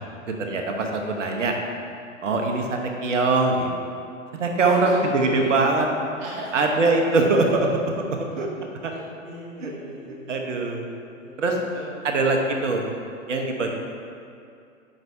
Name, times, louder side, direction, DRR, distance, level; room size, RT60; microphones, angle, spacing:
voice 1, 0.3-1.5 2.2-3.7 4.4-5.9 6.5-7.7 8.4-8.5 8.8-8.9 9.6-9.7 10.3-10.9 11.4-11.6 12.0-12.9 13.3-13.7, right 3 dB, 65° right, 2 dB, 1.1 m, -22 dB
voice 2, 4.6-5.0 5.3-5.7 6.2-6.5 9.2-10.5 11.1-11.8 12.1-12.4, right 1 dB, 10° right, -6 dB, 0.4 m, -37 dB
9.4 x 4.7 x 2.7 m, 2.4 s
figure-of-eight pair, 125°, 40 cm